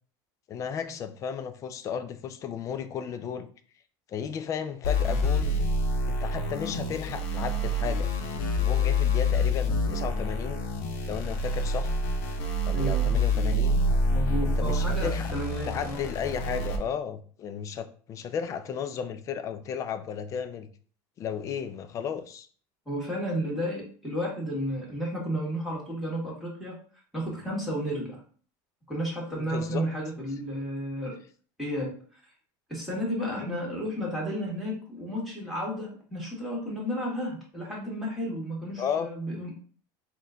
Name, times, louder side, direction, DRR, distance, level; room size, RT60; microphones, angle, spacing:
voice 1, 0.5-3.5 4.1-5.5 6.2-8.1 8.6-10.6 11.1-11.9 12.6-13.7 14.6-15.3 15.7-20.7 21.2-22.5 29.3-29.8 33.4-33.6 38.8-39.1, left 7 dB, 30° left, 10 dB, 0.4 m, -34 dB
sound 1, 4.8-16.8, left 1 dB, 65° left, 0.8 m, -27 dB
voice 2, 12.7-13.1 14.1-16.0 22.8-26.7 27.1-28.2 28.9-31.1 31.6-32.3 32.7-39.5, equal, ahead, -4 dB, 1.7 m, -32 dB
4.3 x 2.3 x 3.7 m, 0.44 s
supercardioid pair, 140°, 10 cm